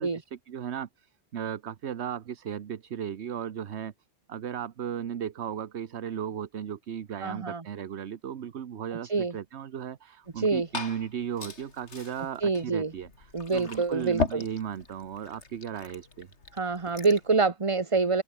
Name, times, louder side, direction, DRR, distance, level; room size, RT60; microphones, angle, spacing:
voice 1, 0.0-3.9 4.3-16.3, right 9 dB, 75° right, 1.2 m, -36 dB
voice 2, 7.2-7.6 9.0-9.3 10.4-10.7 12.4-12.9 13.3-14.4 16.5-18.2, right 4 dB, 30° right, 1.1 m, -26 dB
Liquid, 10.2-17.3, left 3 dB, 85° left, 2.9 m, -38 dB
open air
omnidirectional pair, 1.1 m